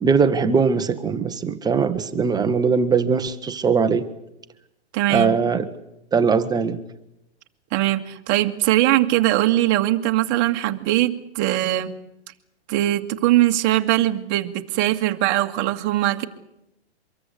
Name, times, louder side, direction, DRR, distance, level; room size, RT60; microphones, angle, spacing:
voice 1, 0.0-4.0 5.1-5.7 6.1-6.8, right 5 dB, 10° right, 9 dB, 1.1 m, -20 dB
voice 2, 4.9-5.4 7.7-11.9 12.7-16.3, right 15 dB, 35° right, 7 dB, 2.0 m, -21 dB
25.0 x 22.5 x 8.5 m, 0.85 s
hypercardioid pair, 140°, 34 cm